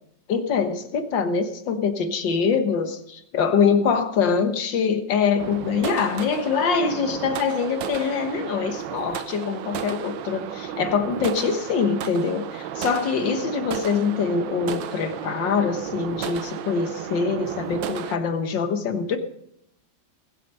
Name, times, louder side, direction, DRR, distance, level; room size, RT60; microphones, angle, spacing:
voice 1, 0.3-19.2, left 5 dB, 80° left, 7 dB, 2.0 m, -24 dB
sound 1, 5.4-18.2, right 9 dB, 90° right, 1.5 m, -33 dB
20.0 x 8.0 x 5.4 m, 0.76 s
omnidirectional pair, 2.0 m